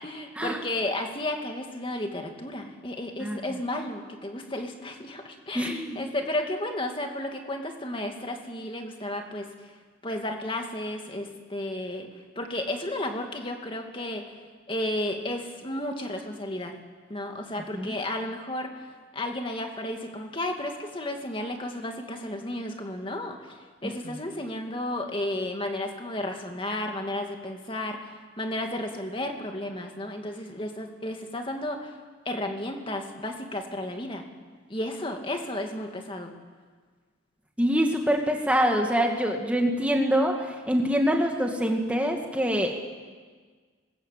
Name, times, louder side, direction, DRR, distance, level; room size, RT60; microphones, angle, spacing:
voice 1, 0.0-9.7 10.0-12.1 12.4-14.3 14.7-16.8 17.1-31.9 32.3-34.3 34.7-36.3, left 1 dB, 25° left, 3 dB, 2.3 m, -33 dB
voice 2, 5.5-6.0 17.7-17.9 23.8-23.9 37.6-42.7, equal, 5° right, 2 dB, 2.1 m, -25 dB
26.0 x 21.0 x 8.4 m, 1.5 s
head